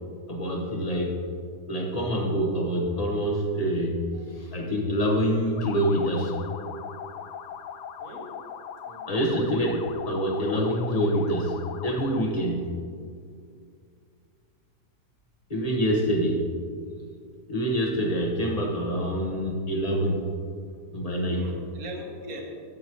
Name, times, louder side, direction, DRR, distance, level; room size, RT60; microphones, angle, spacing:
voice 1, 0.3-1.2 1.7-4.0 4.4-6.3 9.1-12.7 15.5-16.4 17.5-20.2 20.9-21.5, equal, 25° left, 0 dB, 1.1 m, -26 dB
voice 2, 4.1-4.4 8.0-8.4 8.8-9.3 15.6-16.1 21.3-22.4, right 1 dB, 60° right, 0 dB, 1.7 m, -42 dB
sound 1, 5.6-12.4, left 8 dB, 80° left, 1.2 m, -40 dB
13.0 x 8.4 x 3.0 m, 2.2 s
omnidirectional pair, 1.8 m